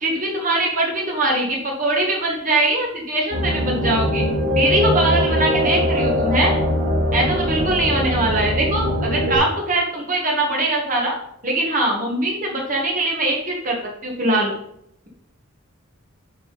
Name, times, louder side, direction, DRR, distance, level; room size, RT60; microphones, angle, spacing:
voice 1, 0.0-4.2 4.5-6.5 7.1-11.1 11.4-13.8 14.0-14.5, right 2 dB, 40° right, -1 dB, 1.6 m, -22 dB
sound 1, 3.3-9.4, left 1 dB, 65° right, 2.3 m, -21 dB
9.1 x 5.8 x 4.1 m, 0.72 s
head